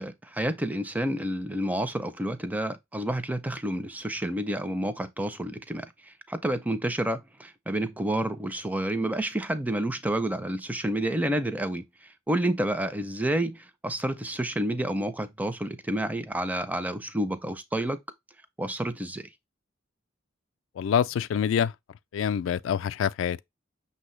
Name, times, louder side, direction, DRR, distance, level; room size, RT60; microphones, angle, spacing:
voice 1, 0.0-5.9 6.3-11.8 12.3-18.0 18.6-19.3, right 1 dB, 10° right, 0.4 m, -29 dB
voice 2, 20.8-21.7 22.1-23.4, left 8 dB, 75° left, 0.3 m, -26 dB
6.1 x 2.8 x 3.1 m
head